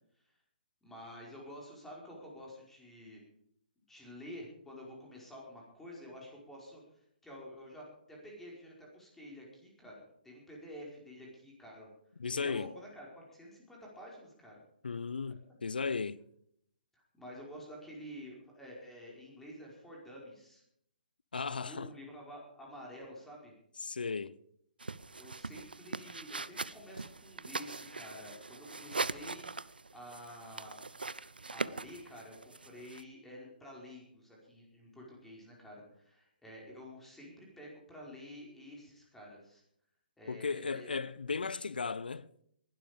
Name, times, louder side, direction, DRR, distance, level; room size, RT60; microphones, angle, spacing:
voice 1, 0.8-3.2 3.9-11.9 12.3-14.6 16.9-20.6 21.5-23.5 25.2-29.5 29.9-30.8 31.5-39.6 40.2-41.0, equal, 5° left, 5.0 m, -50 dB
voice 2, 12.2-12.7 14.8-16.2 21.3-21.9 23.8-24.4 40.3-42.3, left 5 dB, 75° left, 0.7 m, -36 dB
sound 1, 24.8-33.0, right 3 dB, 85° right, 0.6 m, -41 dB
20.5 x 12.0 x 5.2 m
figure-of-eight pair, 135°, 5 cm